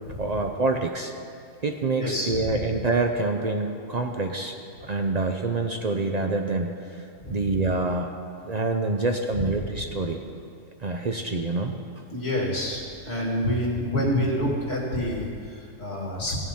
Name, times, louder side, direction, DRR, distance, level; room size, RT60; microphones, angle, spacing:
voice 1, 0.2-1.1 1.6-4.5 4.8-7.0 7.3-8.1 8.4-10.2 10.8-11.8, right 3 dB, 60° right, 3 dB, 0.4 m, -26 dB
voice 2, 2.0-2.6 7.2-7.5 9.3-9.5 12.1-16.4, left 1 dB, 45° left, -3 dB, 2.7 m, -28 dB
16.0 x 7.3 x 5.5 m, 2.4 s
omnidirectional pair, 1.6 m